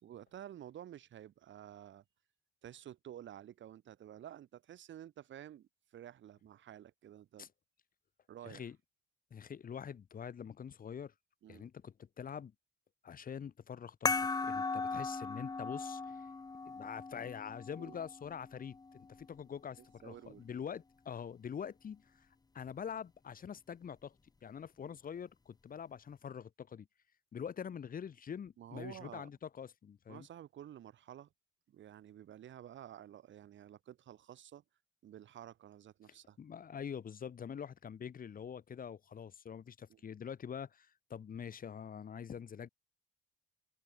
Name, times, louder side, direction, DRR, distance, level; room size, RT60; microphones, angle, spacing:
voice 1, 0.0-2.0 2.6-7.5 8.3-8.7 11.4-11.7 14.7-14.9 17.8-18.0 19.8-20.4 28.6-29.3 30.1-31.3 31.7-34.6 35.0-36.4 39.9-40.0, right 11 dB, 70° right, 4.9 m, -51 dB
voice 2, 8.4-8.8 9.3-11.1 11.5-12.5 13.0-16.3 16.6-22.3 22.5-24.1 24.4-26.9 27.3-30.3 36.1-42.7, left 7 dB, 45° left, 1.4 m, -45 dB
sound 1, 14.1-19.1, left 4 dB, 20° left, 0.7 m, -38 dB
open air
cardioid pair, 90°, 20 cm